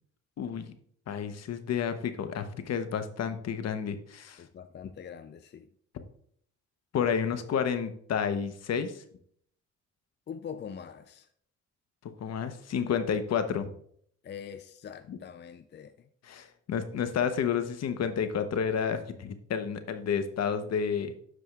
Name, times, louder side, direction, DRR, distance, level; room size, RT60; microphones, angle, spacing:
voice 1, 0.4-0.7 1.1-4.4 6.9-9.0 12.2-13.7 15.1-15.2 16.2-21.1, left 7 dB, 60° left, 9 dB, 0.9 m, -30 dB
voice 2, 4.4-5.7 10.3-11.3 14.2-16.1, left 7 dB, 35° left, 10 dB, 0.4 m, -43 dB
12.5 x 4.9 x 2.4 m, 0.63 s
cardioid pair, 90°, 30 cm